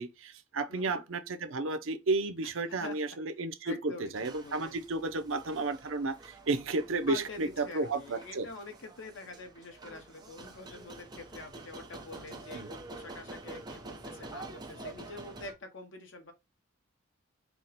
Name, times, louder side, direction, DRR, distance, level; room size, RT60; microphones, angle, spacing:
voice 1, 0.0-8.5 12.5-12.7, right 3 dB, 75° right, 0.6 m, -32 dB
voice 2, 0.7-1.0 2.4-3.0 3.6-4.8 7.1-16.3, left 3 dB, 65° left, 1.0 m, -46 dB
sound 1, 4.1-15.5, right 2 dB, 20° right, 0.8 m, -48 dB
4.5 x 2.2 x 4.1 m
head